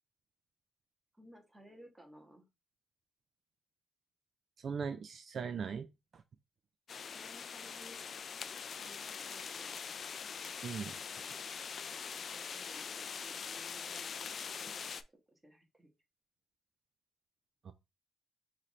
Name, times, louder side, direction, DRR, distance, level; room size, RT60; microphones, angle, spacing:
voice 1, 1.1-2.5 7.1-8.0 8.8-9.7 12.1-15.0 15.3-15.9, right 1 dB, 10° right, 1.2 m, -58 dB
voice 2, 4.6-5.9 6.1-6.2 10.6-10.9 17.6-17.7, right 6 dB, 50° right, 0.3 m, -39 dB
sound 1, 6.9-15.0, left 6 dB, 45° left, 0.3 m, -43 dB
5.6 x 2.5 x 3.1 m
cardioid pair, 110°, 0 cm